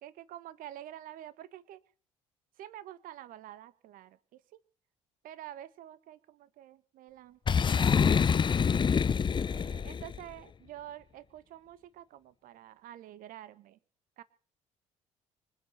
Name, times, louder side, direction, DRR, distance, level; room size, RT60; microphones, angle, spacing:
voice 1, 0.0-1.8 2.6-4.6 5.2-13.8 14.2-14.3, right 12 dB, 60° right, 16 dB, 1.4 m, -48 dB
Boom, 7.5-10.2, left 6 dB, 30° left, 0.6 m, -26 dB
25.0 x 8.3 x 5.7 m, 0.42 s
hypercardioid pair, 50°, 16 cm